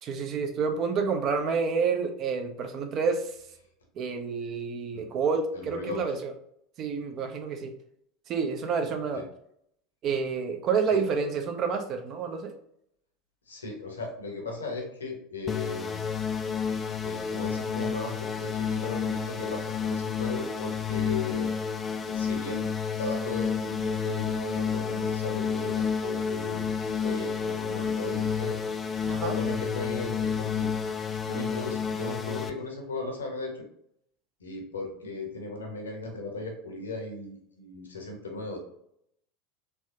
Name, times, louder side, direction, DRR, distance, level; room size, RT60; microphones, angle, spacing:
voice 1, 0.0-3.3 4.0-6.3 6.8-7.7 8.3-9.2 10.0-12.5 29.1-29.3, right 5 dB, 40° right, 5 dB, 0.6 m, -29 dB
voice 2, 5.5-6.1 9.2-9.3 10.9-11.0 13.5-16.0 17.0-21.5 22.1-22.7 23.0-28.5 29.0-30.7 31.2-33.6 34.4-38.6, left 2 dB, 80° left, 1 dB, 0.9 m, -37 dB
sound 1, 15.5-32.5, left 6 dB, 25° left, 0.4 m, -30 dB
3.4 x 3.2 x 2.7 m, 0.72 s
figure-of-eight pair, 75°, 0 cm